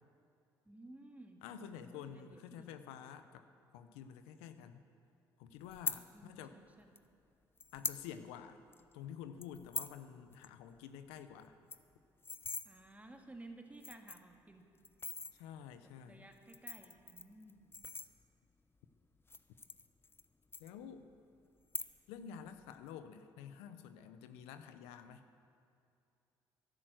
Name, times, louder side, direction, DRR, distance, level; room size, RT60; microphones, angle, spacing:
voice 1, 0.7-2.8 6.1-6.9 12.6-14.7 15.8-17.7, right 2 dB, 15° right, 4 dB, 1.8 m, -56 dB
voice 2, 1.4-3.4 3.7-4.8 5.4-6.5 7.7-8.6 8.9-11.5 15.3-16.2 20.6-21.1 22.1-25.2, left 8 dB, 85° left, 10 dB, 0.7 m, -50 dB
sound 1, 5.7-6.0 7.0-7.1 7.6-8.0 8.4-8.5 8.7-8.9 9.4-10.0 10.3-10.5 10.8-10.9 11.2-11.3 11.5-12.7 13.3-13.4 13.7-14.3 14.8-15.3 16.3-18.5 19.2-20.3 20.5-21.2 21.6-22.2 22.5-22.9, left 4 dB, 25° left, 0.7 m, -42 dB
11.5 x 11.0 x 7.7 m, 2.5 s
supercardioid pair, 65°, 10 cm